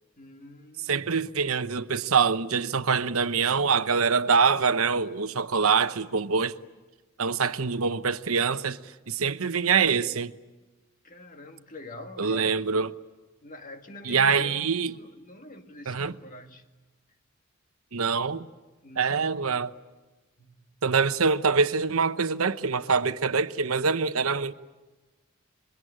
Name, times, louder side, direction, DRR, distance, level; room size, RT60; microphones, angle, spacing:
voice 1, 0.2-1.2 11.0-12.6 13.4-16.7 18.8-19.3 20.4-20.7, left 2 dB, 40° left, 1.9 m, -45 dB
voice 2, 0.9-6.6 7.2-8.8 9.1-10.3 12.2-12.9 14.0-14.9 15.9-16.1 17.9-18.5 19.0-19.7 20.8-24.5, right 5 dB, 85° right, 1.0 m, -24 dB
27.0 x 23.5 x 8.8 m
head